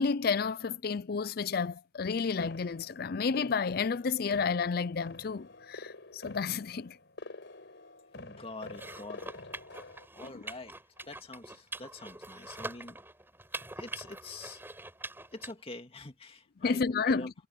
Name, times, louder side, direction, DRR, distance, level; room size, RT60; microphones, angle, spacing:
voice 1, 0.0-7.0 10.3-10.4 16.6-17.3, left 5 dB, 50° left, 0.5 m, -31 dB
sound 1, 2.4-10.1, left 2 dB, 65° left, 4.5 m, -48 dB
voice 2, 8.1-9.3 10.1-10.8 11.1-13.0 13.8-14.6 15.3-17.3, left 2 dB, 30° left, 2.1 m, -45 dB
sound 2, 8.7-15.5, right 2 dB, 10° right, 7.9 m, -44 dB
head